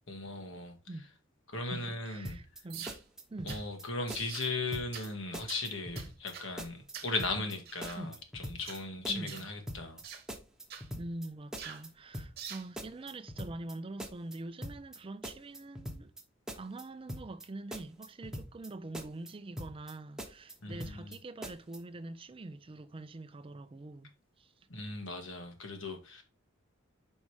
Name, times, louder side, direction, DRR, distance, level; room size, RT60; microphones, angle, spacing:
voice 1, 0.1-0.7 1.5-2.4 3.4-10.0 20.6-21.2 24.7-26.2, left 3 dB, 80° left, 1.7 m, -37 dB
voice 2, 1.7-2.9 3.3-3.6 8.0-8.2 9.1-9.5 11.0-16.1 16.6-24.1 24.4-24.5, right 2 dB, 30° right, 0.4 m, -44 dB
sound 1, 2.2-2.6 2.9-3.8 4.1-4.5 4.7-5.1 5.3-6.3 6.6-6.9 7.2-7.5 7.8-8.8 9.0-9.4 9.7-10.0 10.3-11.3 11.5-11.9 12.1-12.5 12.8-13.7 14.0-14.4 14.6-15.0 15.2-16.2 16.5-16.8 17.1-17.4 17.7-18.7 18.9-19.3 19.6-19.9 20.2-21.2 21.4-21.8, equal, 5° right, 1.0 m, -42 dB
sound 2, 2.7-3.0 3.5-3.6 4.1-4.5 4.9-5.1 5.5-5.6 6.0-6.5 6.9-7.2 7.7-8.0 8.6-8.8 9.3-9.5 10.0-10.3 10.7-10.9 11.6-11.9 12.4-12.7, right 8 dB, 55° right, 1.2 m, -45 dB
5.4 x 4.8 x 4.8 m
head